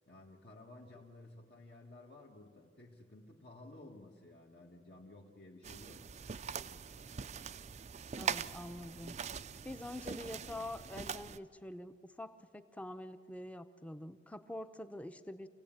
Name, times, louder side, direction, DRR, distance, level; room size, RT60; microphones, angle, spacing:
voice 1, 0.1-6.1 10.1-10.4, left 2 dB, 60° left, -3 dB, 1.5 m, -55 dB
sound 1, 5.6-11.4, right 6 dB, 40° right, 0.5 m, -42 dB
voice 2, 8.1-9.2 9.6-15.5, left 1 dB, 5° left, 10 dB, 0.7 m, -46 dB
26.5 x 16.5 x 8.9 m, 2.3 s
head